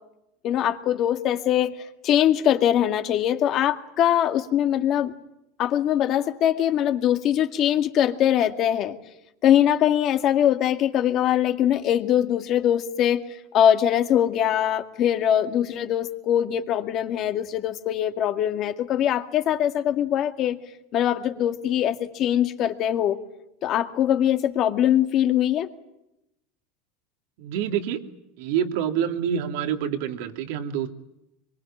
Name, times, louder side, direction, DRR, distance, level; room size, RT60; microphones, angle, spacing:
voice 1, 0.4-1.8 2.0-5.1 5.6-9.0 9.4-13.2 13.5-20.6 20.9-23.2 23.6-25.7, left 10 dB, 40° left, 7 dB, 2.1 m, -22 dB
voice 2, 27.4-28.0 28.4-30.9, right 9 dB, 65° right, 6 dB, 2.7 m, -27 dB
25.5 x 23.0 x 8.7 m, 0.87 s
supercardioid pair, 140°, 0 cm